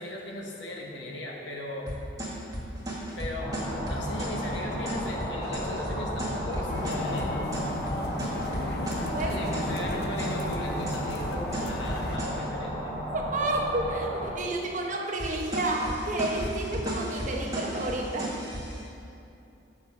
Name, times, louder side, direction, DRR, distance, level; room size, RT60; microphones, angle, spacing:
voice 1, 0.0-2.0 3.1-7.6 9.1-13.0, left 1 dB, 75° left, -1 dB, 1.3 m, -37 dB
sound 1, 1.9-12.4 15.2-18.8, equal, 20° right, 1.5 m, -35 dB
sound 2, 3.4-14.3, equal, 25° left, 1.6 m, -34 dB
sound 3, 6.7-12.2, left 3 dB, 60° left, 0.4 m, -37 dB
voice 2, 13.1-18.3, right 2 dB, 45° right, 0 dB, 1.0 m, -30 dB
7.4 x 7.0 x 5.4 m, 2.7 s
head